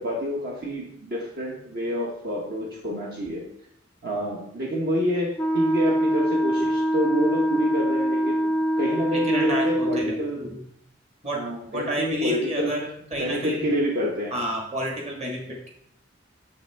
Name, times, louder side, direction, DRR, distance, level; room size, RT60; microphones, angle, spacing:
voice 1, 0.0-3.4 4.0-10.5 11.3-12.7 13.2-14.3, equal, 55° right, -3 dB, 1.1 m, -28 dB
Wind instrument woodwind instrument, 5.4-10.2, equal, 10° left, 0.4 m, -24 dB
voice 2, 9.1-10.6 11.2-11.5 11.7-13.7 14.3-15.7, equal, 35° right, 0 dB, 1.6 m, -30 dB
6.9 x 5.8 x 3.4 m, 0.69 s
head